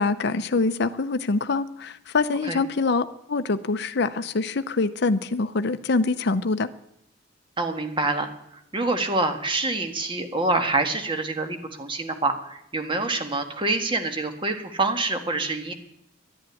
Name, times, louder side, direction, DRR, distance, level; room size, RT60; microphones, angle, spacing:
voice 1, 0.0-6.7, left 3 dB, 60° left, 11 dB, 0.7 m, -25 dB
voice 2, 7.6-8.3 8.7-15.7, right 2 dB, 25° right, 6 dB, 1.6 m, -26 dB
11.5 x 10.5 x 9.8 m, 0.78 s
head